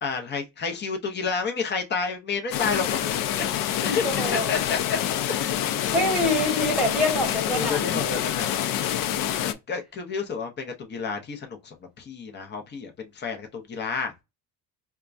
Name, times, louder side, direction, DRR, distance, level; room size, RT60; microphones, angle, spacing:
voice 1, 0.0-3.1 3.8-4.0 4.5-5.0 5.3-5.6 5.8-6.3 7.5-8.7 9.3-14.1, left 5 dB, 30° left, 0.9 m, -30 dB
sound 1, 2.5-9.5, left 11 dB, 70° left, 0.6 m, -27 dB
voice 2, 3.8-4.6 5.9-8.0, left 1 dB, ahead, 1.6 m, -26 dB
4.4 x 2.3 x 2.6 m
cardioid pair, 135°, 34 cm